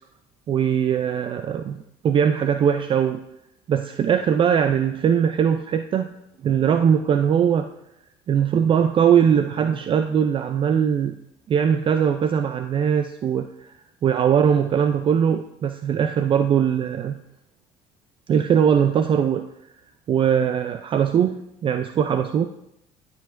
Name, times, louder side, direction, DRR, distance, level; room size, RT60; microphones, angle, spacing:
voice 1, 0.5-3.2 3.7-6.1 6.4-7.7 8.3-11.1 11.5-13.7 14.0-17.2 18.3-19.5 20.1-22.5, right 8 dB, 40° right, 9 dB, 0.4 m, -20 dB
12.0 x 5.0 x 2.5 m, 0.82 s
supercardioid pair, 80°, 14 cm